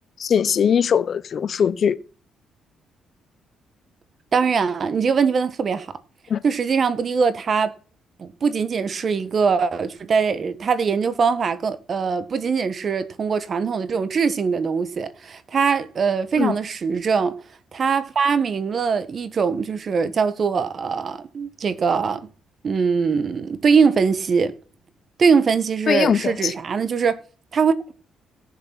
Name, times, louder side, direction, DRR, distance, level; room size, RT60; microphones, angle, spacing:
voice 1, 0.2-2.0 6.3-6.4 16.4-16.5 25.9-26.5, left 7 dB, 55° left, 0.8 m, -20 dB
voice 2, 4.3-5.9 6.4-7.7 8.2-17.3 17.7-22.3 22.6-24.5 25.2-27.2 27.5-27.7, right 5 dB, 45° right, 1.4 m, -22 dB
17.5 x 7.2 x 6.0 m
cardioid pair, 90°, 0 cm